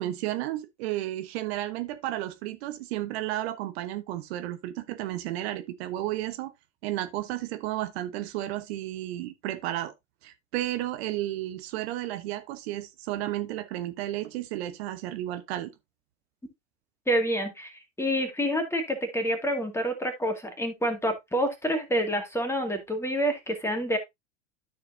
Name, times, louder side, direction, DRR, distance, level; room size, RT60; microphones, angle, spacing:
voice 1, 0.0-6.5 6.8-9.9 10.2-15.7, right 14 dB, 55° right, 1.1 m, -32 dB
voice 2, 17.1-24.0, equal, 5° left, 2.1 m, -28 dB
13.5 x 4.6 x 2.7 m
hypercardioid pair, 95°, 37 cm